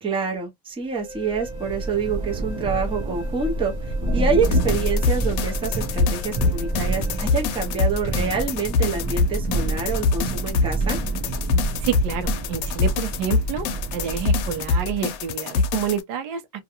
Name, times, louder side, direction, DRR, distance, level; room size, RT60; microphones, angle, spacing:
voice 1, 0.0-11.0, right 5 dB, 10° right, 0.5 m, -27 dB
sound 1, 0.8-8.4, equal, 45° left, 0.7 m, -42 dB
Thunder / Rain, 1.1-15.2, right 2 dB, 40° right, 0.8 m, -28 dB
sound 2, 4.4-16.0, left 4 dB, 90° left, 0.7 m, -25 dB
voice 2, 11.8-13.7 13.9-16.4, right 9 dB, 85° right, 0.8 m, -28 dB
2.5 x 2.2 x 2.8 m
cardioid pair, 170°, 45 cm